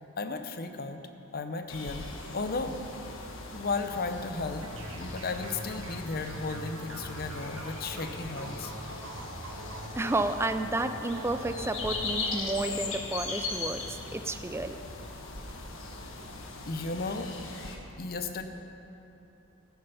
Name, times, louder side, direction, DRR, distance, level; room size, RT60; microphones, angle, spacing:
voice 1, 0.2-1.0 1.3-2.1 2.3-2.8 3.5-8.7 16.7-17.4 18.0-18.4, left 3 dB, 50° left, 7 dB, 0.8 m, -34 dB
sound 1, 1.7-17.8, left 3 dB, 70° left, 1.3 m, -39 dB
sound 2, 4.5-12.9, right 1 dB, 85° right, 1.7 m, -43 dB
voice 2, 10.0-14.8, right 2 dB, 10° right, 9 dB, 0.4 m, -31 dB
15.0 x 8.8 x 5.6 m, 3.0 s
head